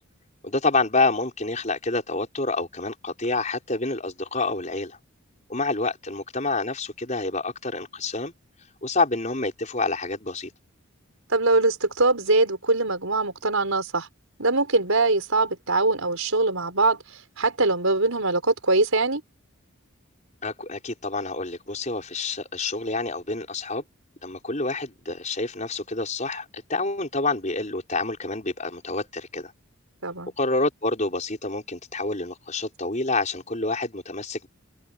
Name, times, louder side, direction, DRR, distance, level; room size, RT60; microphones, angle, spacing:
voice 1, 0.4-5.0 5.5-8.3 8.8-10.5 20.4-23.8 24.2-29.5 30.4-34.5, left 3 dB, 35° left, 5.4 m, -28 dB
voice 2, 11.3-14.1 14.4-17.0 17.4-19.2 30.0-30.3, right 2 dB, 75° right, 5.0 m, -22 dB
head